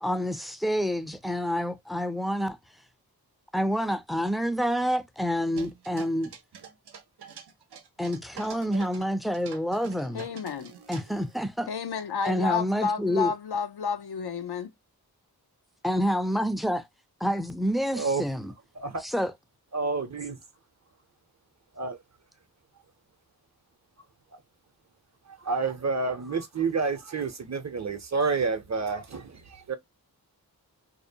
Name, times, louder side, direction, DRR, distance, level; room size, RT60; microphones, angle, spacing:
voice 1, 0.0-2.6 3.5-6.3 8.0-10.2 10.9-11.7 12.2-13.3 15.8-16.9 17.2-18.5 19.0-19.3, equal, ahead, 0.4 m, -28 dB
sound 1, 5.5-9.1 9.3-11.4, right 7 dB, 85° right, 0.6 m, -46 dB
voice 2, 10.1-10.7 11.7-14.7, left 6 dB, 80° left, 0.6 m, -30 dB
voice 3, 19.7-20.4 21.8-22.0 25.4-29.8, right 4 dB, 45° right, 0.7 m, -29 dB
2.7 x 2.0 x 2.6 m
cardioid pair, 45°, 38 cm